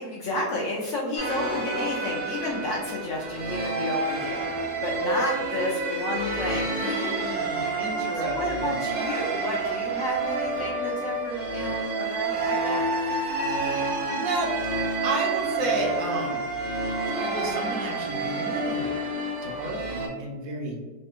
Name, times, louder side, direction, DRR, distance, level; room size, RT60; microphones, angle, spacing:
voice 1, 0.0-7.0 8.0-13.2, left 1 dB, 70° left, -3 dB, 0.7 m, -32 dB
sound 1, 1.2-20.1, right 2 dB, 90° right, 1.3 m, -29 dB
voice 2, 6.8-8.8 14.2-14.5 15.0-16.4 17.2-18.8 19.4-21.0, right 2 dB, 70° right, 0 dB, 1.0 m, -32 dB
3.3 x 2.2 x 2.9 m, 1.3 s
omnidirectional pair, 1.6 m